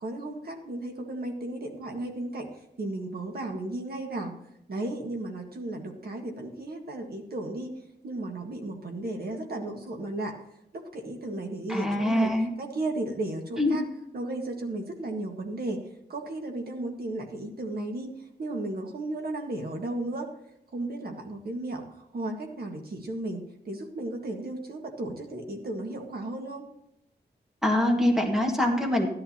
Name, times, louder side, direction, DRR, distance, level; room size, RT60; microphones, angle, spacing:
voice 1, 0.0-2.5 2.8-4.4 4.7-7.8 8.0-10.3 10.7-12.3 12.6-13.8 14.1-18.1 18.4-20.3 20.7-26.7, right 2 dB, 60° right, 2 dB, 1.7 m, -34 dB
voice 2, 11.7-12.5 13.6-13.8 27.6-29.1, left 1 dB, ahead, 1 dB, 1.8 m, -24 dB
15.0 x 11.0 x 2.9 m, 0.80 s
wide cardioid pair, 165°, 18 cm